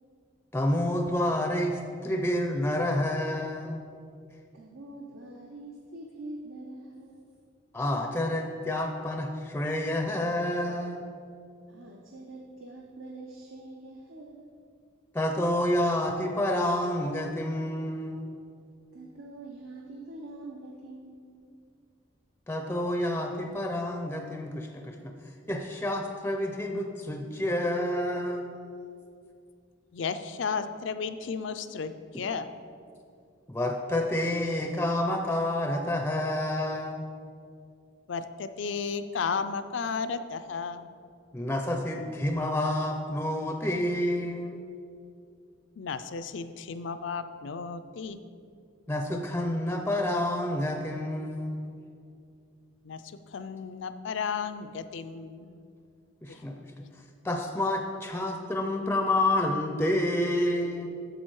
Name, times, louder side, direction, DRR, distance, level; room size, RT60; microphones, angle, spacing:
voice 1, 0.5-3.9 7.7-11.0 15.1-18.4 22.5-25.1 25.5-28.5 33.5-37.0 41.3-44.6 48.9-51.7 56.2-56.8 57.2-60.9, left 1 dB, 10° left, 3 dB, 0.5 m, -29 dB
voice 2, 4.5-7.3 11.7-14.5 18.9-21.6, right 2 dB, 80° right, 0 dB, 0.8 m, -44 dB
voice 3, 29.9-32.5 38.1-40.9 45.8-48.2 52.8-55.6 56.3-56.4, left 5 dB, 65° left, 11 dB, 0.4 m, -34 dB
8.7 x 6.8 x 4.7 m, 2.4 s
head